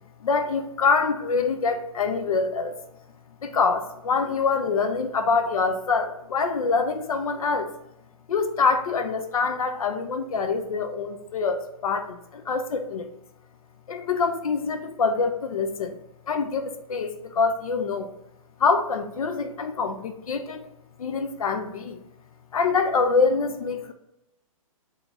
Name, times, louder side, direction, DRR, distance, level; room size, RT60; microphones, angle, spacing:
voice 1, 0.2-2.7 3.4-7.7 8.3-13.1 13.9-16.0 16.3-18.1 18.6-20.6 21.0-22.0 22.5-23.9, left 4 dB, 80° left, 7 dB, 0.5 m, -25 dB
2.9 x 2.4 x 3.8 m, 0.86 s
hypercardioid pair, 135°, 18 cm